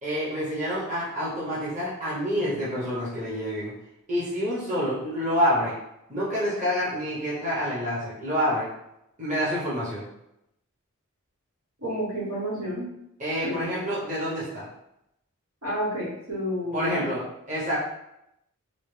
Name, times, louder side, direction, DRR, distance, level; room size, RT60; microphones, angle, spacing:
voice 1, 0.0-3.8 4.1-5.7 6.1-8.7 9.2-10.1 13.2-14.7 16.7-17.8, equal, 35° right, -8 dB, 1.0 m, -27 dB
voice 2, 11.8-12.9 13.4-13.6 15.6-17.1, equal, 80° right, -5 dB, 1.2 m, -30 dB
3.9 x 2.0 x 3.2 m, 0.83 s
head